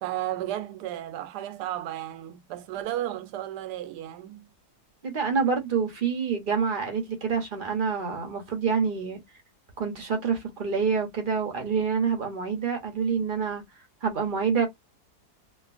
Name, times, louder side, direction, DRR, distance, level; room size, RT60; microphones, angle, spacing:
voice 1, 0.0-4.5, right 13 dB, 85° right, 1.1 m, -33 dB
voice 2, 5.0-9.2 9.8-13.6 14.0-14.7, right 6 dB, 45° right, 0.7 m, -27 dB
3.0 x 2.3 x 2.4 m
omnidirectional pair, 1.7 m